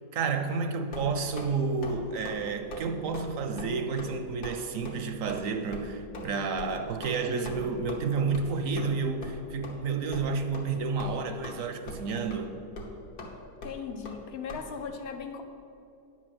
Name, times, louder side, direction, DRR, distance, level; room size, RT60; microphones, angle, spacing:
voice 1, 0.1-12.5, right 4 dB, 70° right, 0.9 m, -30 dB
sound 1, 0.9-1.5 1.8-2.0 2.2-2.4 2.7-2.9 3.1-3.3 3.6-3.7 4.0-4.1 4.4-4.6 4.8-5.0 5.3-5.4 5.7-5.8 6.1-6.3 6.6-6.7 7.0-7.1 7.4-7.6 7.9-8.0 8.3-8.5 8.8-8.9 9.2-9.3 9.6-9.7 10.1-10.2 10.5-10.7 11.0-11.6 11.9-12.0 12.3-12.4 12.8-12.9 13.2-13.3 13.6-13.7 14.0-14.2 14.5-14.6, left 2 dB, 75° left, 1.7 m, -40 dB
voice 2, 7.3-7.7 13.6-15.4, left 6 dB, 55° left, 0.7 m, -38 dB
9.9 x 4.6 x 7.5 m
omnidirectional pair, 1.7 m